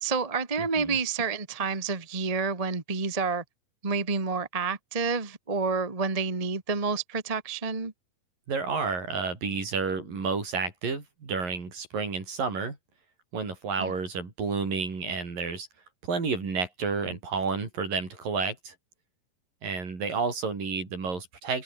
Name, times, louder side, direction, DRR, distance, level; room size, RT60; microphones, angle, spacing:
voice 1, 0.0-3.4 3.8-7.9 13.8-13.9, right 4 dB, 20° right, 1.1 m, -29 dB
voice 2, 0.6-1.0 8.5-12.8 13.3-15.7 16.1-18.7 19.6-21.6, right 4 dB, 70° right, 7.6 m, -30 dB
omnidirectional pair, 4.2 m